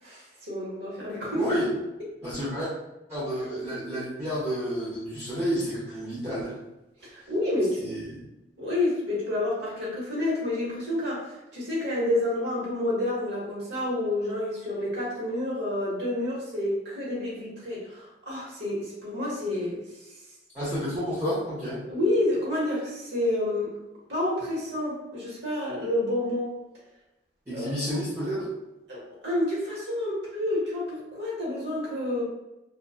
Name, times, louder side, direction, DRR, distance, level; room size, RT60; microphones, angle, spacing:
voice 1, 0.0-1.5 7.0-7.8 8.6-19.8 21.9-23.7 24.1-26.6 27.5-27.9 28.9-32.2, left 1 dB, 70° right, -5 dB, 1.0 m, -29 dB
voice 2, 1.3-1.7 2.2-2.7 3.1-6.5 7.8-8.2 20.5-21.8 27.5-28.5, equal, 15° right, -12 dB, 0.7 m, -30 dB
2.5 x 2.3 x 2.3 m, 0.96 s
head